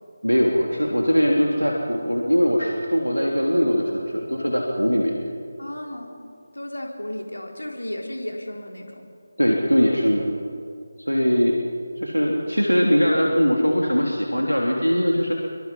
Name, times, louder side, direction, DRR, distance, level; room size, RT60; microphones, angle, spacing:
voice 1, 0.2-5.2 9.4-10.3 11.1-11.6 12.0-15.3, equal, 90° left, -1 dB, 3.2 m, -21 dB
voice 2, 5.6-6.2 6.5-9.0, left 1 dB, 75° left, 1 dB, 4.4 m, -34 dB
27.0 x 24.5 x 5.6 m, 2.3 s
figure-of-eight pair, 160°, 0 cm